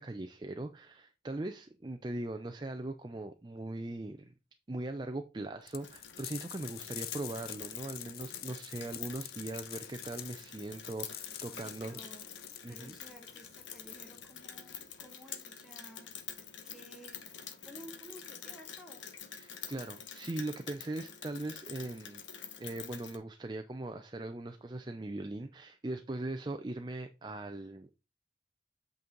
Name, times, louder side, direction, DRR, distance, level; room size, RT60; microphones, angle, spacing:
voice 1, 0.0-4.3 4.7-12.0 12.6-12.9 19.3-22.2 22.6-27.9, right 2 dB, 25° right, 0.5 m, -40 dB
sound 1, 5.7-15.1, left 12 dB, 50° left, 0.6 m, -47 dB
Rain, 5.8-23.2, left 8 dB, 85° left, 1.4 m, -47 dB
voice 2, 11.5-16.1 16.6-17.2 17.6-19.0, equal, ahead, 1.2 m, -54 dB
8.4 x 5.3 x 3.8 m
head